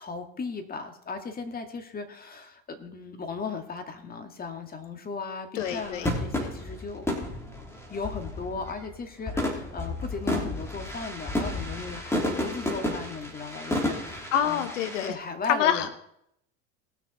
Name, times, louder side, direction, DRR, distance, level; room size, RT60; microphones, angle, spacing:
voice 1, 0.0-7.0 7.9-14.7 15.0-15.9, left 4 dB, 25° left, 5 dB, 2.1 m, -37 dB
voice 2, 5.5-6.1 14.3-15.1 15.5-16.1, left 10 dB, 85° left, 12 dB, 1.1 m, -26 dB
sound 1, 5.6-8.9 9.3-15.1, left 1 dB, 5° left, 3.2 m, -32 dB
19.5 x 6.9 x 4.3 m, 0.72 s
supercardioid pair, 100°, 36 cm